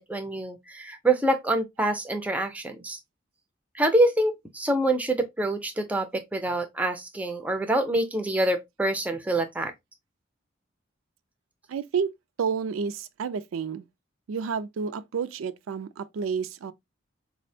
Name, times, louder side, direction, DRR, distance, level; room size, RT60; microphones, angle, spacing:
voice 1, 0.0-3.0 3.7-9.7, right 1 dB, 5° right, 0.4 m, -26 dB
voice 2, 11.7-12.1 12.4-13.8 14.3-16.7, right 6 dB, 85° right, 0.4 m, -30 dB
4.2 x 2.1 x 2.6 m
head